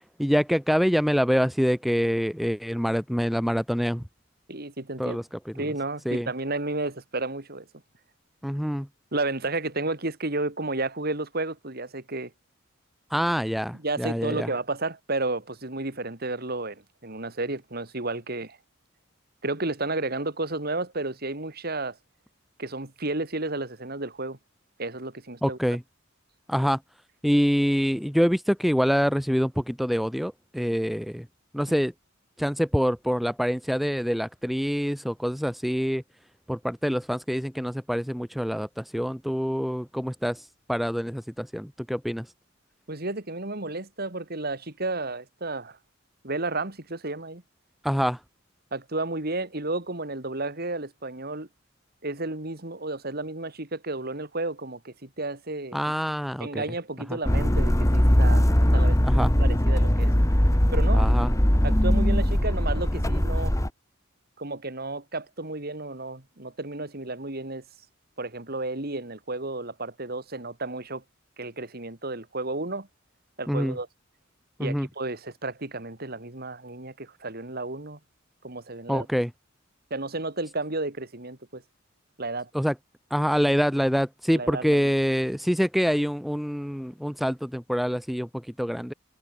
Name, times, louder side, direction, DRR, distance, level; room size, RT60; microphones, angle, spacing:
voice 1, 0.2-4.0 5.0-5.7 6.1-6.3 8.4-8.9 13.1-14.5 25.4-25.8 26.5-26.8 27.2-31.3 31.5-31.9 32.4-36.0 36.5-42.3 47.8-48.2 55.7-56.7 57.1-57.2 59.0-59.3 60.9-61.3 73.5-73.8 74.6-74.9 78.9-79.3 82.5-82.7 83.1-88.9, equal, ahead, 5.3 m, -26 dB
voice 2, 4.5-5.2 5.6-7.6 9.1-12.3 13.8-18.6 19.4-22.0 22.6-24.4 24.8-25.6 42.9-45.8 46.2-47.4 48.7-51.5 52.0-55.9 56.4-59.0 59.4-60.1 60.7-61.1 61.6-63.5 64.4-67.6 68.2-71.0 71.4-72.9 73.4-73.9 74.6-78.0 78.4-79.1 79.9-81.6 82.2-82.5 84.3-84.9, right 2 dB, 50° right, 3.2 m, -32 dB
sound 1, 57.2-63.7, equal, 15° left, 1.5 m, -20 dB
head